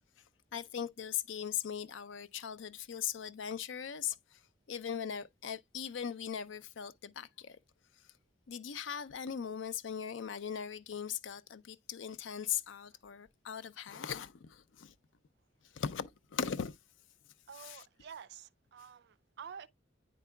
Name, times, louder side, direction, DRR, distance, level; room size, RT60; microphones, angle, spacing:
voice 1, 0.5-4.4 4.7-7.6 8.5-14.9 15.7-16.8 17.6-17.8, left 8 dB, 80° left, 0.5 m, -39 dB
voice 2, 17.5-19.7, right 7 dB, 60° right, 0.4 m, -49 dB
9.2 x 4.6 x 2.2 m
head